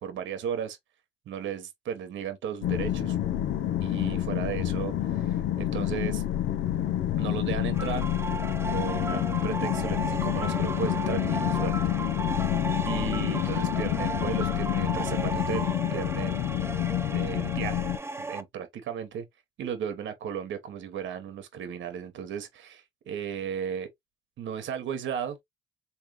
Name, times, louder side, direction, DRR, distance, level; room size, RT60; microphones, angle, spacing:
voice 1, 0.0-0.8 1.3-3.2 3.8-6.2 7.2-8.0 8.7-11.8 12.9-16.4 17.1-17.9 18.2-19.3 19.6-23.9 24.4-25.4, right 8 dB, 70° right, 1.1 m, -35 dB
sound 1, 2.6-18.0, left 12 dB, 80° left, 0.5 m, -28 dB
sound 2, 7.7-18.4, right 3 dB, 10° right, 0.6 m, -35 dB
3.7 x 3.0 x 3.0 m
cardioid pair, 90°, 20 cm